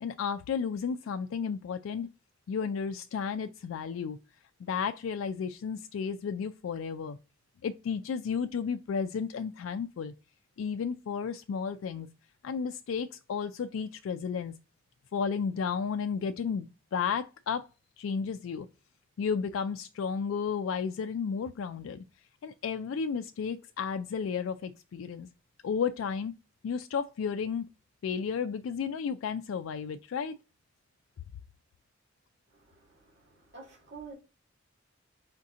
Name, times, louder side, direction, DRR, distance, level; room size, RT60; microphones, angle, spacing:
voice 1, 0.0-2.1 2.5-4.2 4.6-7.2 7.6-10.1 10.6-12.1 12.4-14.5 15.1-17.7 18.0-18.7 19.2-22.1 22.4-25.3 25.6-26.3 26.6-27.7 28.0-30.3, left 6 dB, 80° left, 0.3 m, -33 dB
voice 2, 32.5-34.1, right 5 dB, 60° right, 2.0 m, -49 dB
5.1 x 2.7 x 3.6 m
head